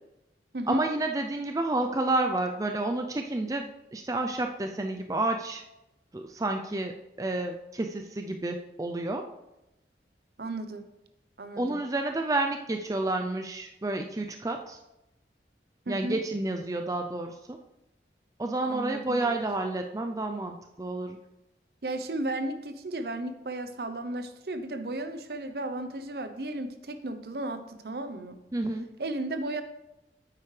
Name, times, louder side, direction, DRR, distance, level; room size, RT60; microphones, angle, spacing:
voice 1, 0.7-5.6 6.1-6.9 7.2-9.2 11.6-14.8 15.9-17.6 18.4-21.2 28.5-28.8, right 2 dB, 20° right, 4 dB, 0.4 m, -30 dB
voice 2, 10.4-10.8 11.4-11.8 15.9-16.2 18.7-19.4 21.8-28.4 29.0-29.6, right 2 dB, 60° right, 9 dB, 0.7 m, -34 dB
9.0 x 8.5 x 3.2 m, 0.92 s
head